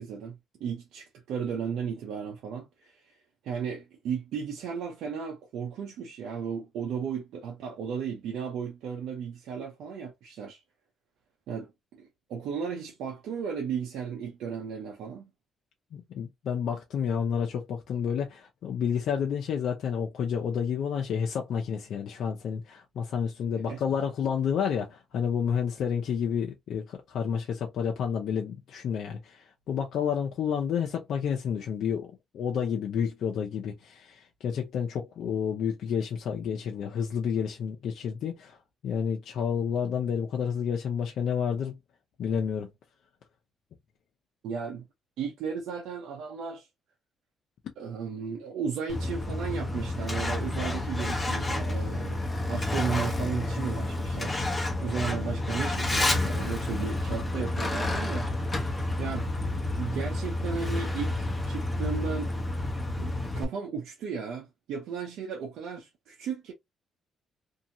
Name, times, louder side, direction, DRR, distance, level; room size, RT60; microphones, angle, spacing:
voice 1, 0.0-3.1 3.4-10.6 11.5-15.3 23.7-23.8 44.4-44.8 45.2-46.7 47.8-52.2 52.5-54.4 54.8-62.3 63.0-66.5, right 6 dB, 85° right, 0.7 m, -35 dB
voice 2, 15.9-38.6 38.8-41.7 42.2-42.7, left 7 dB, 70° left, 0.6 m, -30 dB
Truck, 48.9-63.4, left 2 dB, 25° left, 0.9 m, -30 dB
2.7 x 2.7 x 2.6 m
cardioid pair, 90°, 0 cm